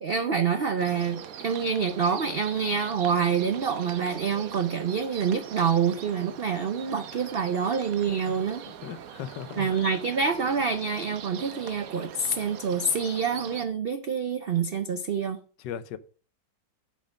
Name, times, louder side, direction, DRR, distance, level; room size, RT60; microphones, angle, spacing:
voice 1, 0.0-8.6 9.6-15.4, right 6 dB, 90° right, 0.5 m, -27 dB
sound 1, 0.8-13.7, right 9 dB, 60° right, 1.1 m, -42 dB
voice 2, 8.8-9.8 15.6-16.0, left 9 dB, 80° left, 1.4 m, -38 dB
8.8 x 6.7 x 5.2 m
omnidirectional pair, 1.9 m